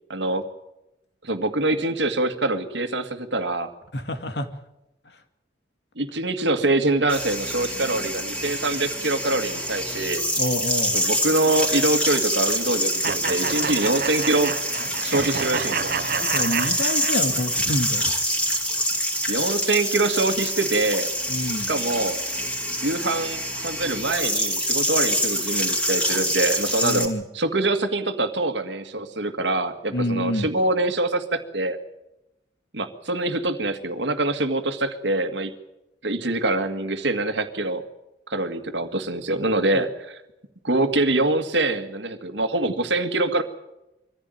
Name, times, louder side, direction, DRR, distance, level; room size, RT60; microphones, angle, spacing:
voice 1, 0.1-0.4 1.2-3.7 6.0-10.2 10.9-14.5 15.0-15.9 19.3-21.1 21.7-22.2 22.8-31.8 32.7-35.5 36.0-37.8 38.3-40.2 40.6-43.4, right 2 dB, 75° right, 8 dB, 2.1 m, -24 dB
voice 2, 3.9-4.5 10.4-11.0 16.2-18.1 21.3-21.7 26.8-27.2 29.9-30.5 39.7-39.8, left 1 dB, 65° left, 8 dB, 2.2 m, -27 dB
sound 1, 7.1-27.1, equal, 5° left, 3.4 m, -26 dB
sound 2, 13.0-17.6, right 6 dB, 55° right, 0.7 m, -29 dB
24.0 x 15.0 x 9.3 m, 0.94 s
head